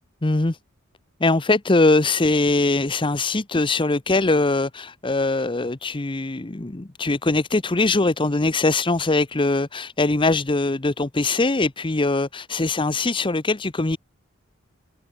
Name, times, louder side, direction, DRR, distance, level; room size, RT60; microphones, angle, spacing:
voice 1, 0.2-0.6 1.2-14.0, left 2 dB, 25° left, 0.8 m, -21 dB
open air
head